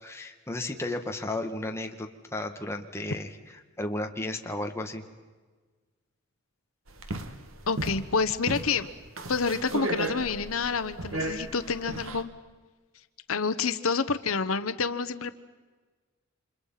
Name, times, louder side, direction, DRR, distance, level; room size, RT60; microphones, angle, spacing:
voice 1, 0.0-3.3 3.8-5.0, left 2 dB, 15° left, 3 dB, 1.9 m, -33 dB
sound 1, 6.9-12.2, right 2 dB, 75° right, 2.0 m, -35 dB
voice 2, 7.7-8.9 9.3-12.3 13.3-15.4, left 5 dB, 80° left, 11 dB, 1.0 m, -28 dB
29.5 x 26.5 x 5.8 m, 1.4 s
head